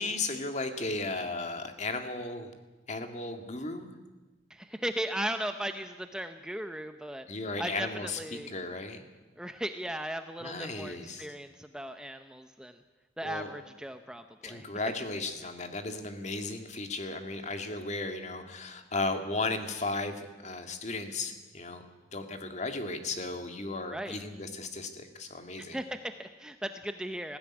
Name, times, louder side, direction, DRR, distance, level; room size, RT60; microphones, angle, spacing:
voice 1, 0.0-2.5 2.9-3.9 7.3-8.2 8.5-9.1 10.4-11.3 13.2-13.5 14.4-21.9 22.1-25.8, left 3 dB, 40° left, 6 dB, 2.0 m, -35 dB
voice 2, 4.5-7.3 7.6-8.5 9.4-12.8 13.2-14.7 23.9-24.2 25.6-27.4, right 1 dB, 5° right, 7 dB, 0.7 m, -37 dB
19.5 x 15.5 x 9.8 m, 1.2 s
head